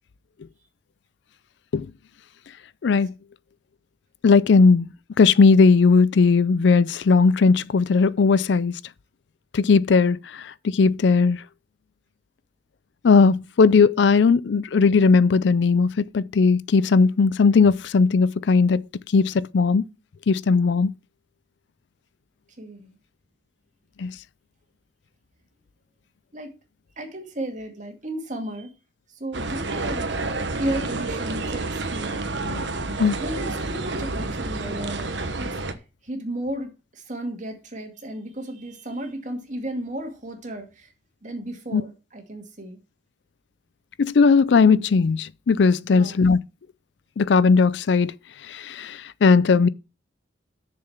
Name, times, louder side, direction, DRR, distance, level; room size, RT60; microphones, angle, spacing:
voice 1, 4.2-4.9 5.2-8.7 9.5-11.4 13.0-18.8 19.1-19.8 20.3-20.9 24.0-24.1 32.5-32.6 33.0-33.2 41.7-41.8 44.0-46.4 47.2-48.1 48.5-49.7, left 4 dB, 65° left, 0.4 m, -18 dB
voice 2, 22.6-23.0 26.3-26.5 27.0-28.7 29.1-30.1 30.6-32.2 32.5-32.6 33.2-35.5 36.0-40.9 41.2-42.8 45.9-46.2, right 1 dB, 40° right, 2.2 m, -34 dB
sound 1, 29.3-35.7, right 3 dB, 65° right, 1.2 m, -29 dB
6.8 x 6.8 x 7.3 m
head